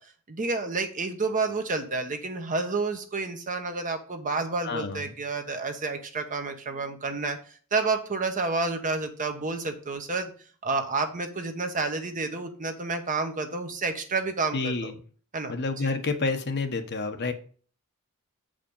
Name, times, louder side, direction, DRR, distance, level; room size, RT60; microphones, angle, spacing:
voice 1, 0.3-10.3 10.6-14.9 15.3-15.5 15.8-15.9, right 3 dB, 35° right, 6 dB, 1.1 m, -30 dB
voice 2, 4.6-5.1 14.5-14.9 15.5-17.3, left 3 dB, 50° left, 6 dB, 1.0 m, -29 dB
7.7 x 5.2 x 5.4 m, 0.42 s
head